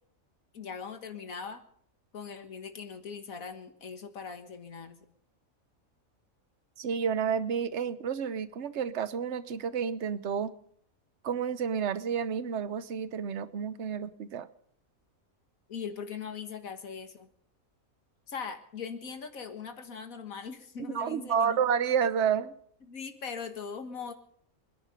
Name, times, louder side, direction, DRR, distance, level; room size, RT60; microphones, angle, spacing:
voice 1, 0.5-1.6 2.1-5.0 15.7-17.3 18.3-21.6 22.9-24.1, left 6 dB, 80° left, 6 dB, 2.0 m, -40 dB
voice 2, 6.8-10.5 11.2-14.5 20.8-22.5, right 7 dB, 60° right, 13 dB, 1.2 m, -30 dB
24.5 x 10.5 x 5.1 m, 0.65 s
omnidirectional pair, 1.4 m